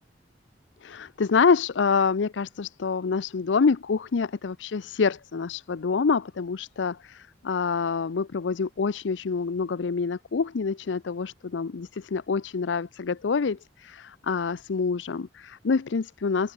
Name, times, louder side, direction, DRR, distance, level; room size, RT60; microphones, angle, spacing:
voice 1, 0.8-16.5, left 5 dB, 80° left, 0.5 m, -26 dB
open air
head